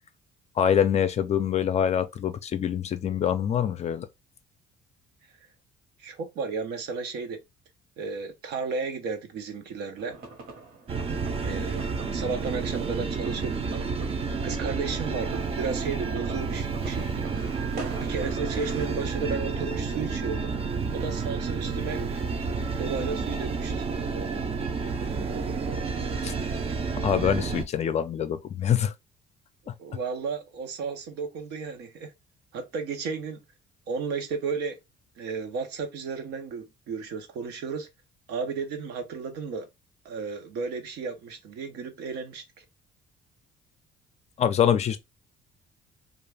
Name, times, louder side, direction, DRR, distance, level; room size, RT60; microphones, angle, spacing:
voice 1, 0.6-4.1 26.2-26.3 27.0-28.9 29.7-29.8 44.4-45.0, left 9 dB, 40° left, 0.4 m, -25 dB
voice 2, 6.0-7.4 8.0-10.2 11.4-13.9 14.4-17.3 18.0-20.5 20.9-22.0 22.8-23.9 29.8-32.1 32.5-33.4 33.9-34.8 35.2-37.9 38.3-39.7 40.0-42.4, right 5 dB, 80° right, 0.8 m, -33 dB
sound 1, 10.0-18.9, right 3 dB, 60° right, 1.2 m, -45 dB
sound 2, 10.9-27.6, right 4 dB, 35° right, 0.5 m, -30 dB
2.4 x 2.4 x 3.2 m
cardioid pair, 110°, 17 cm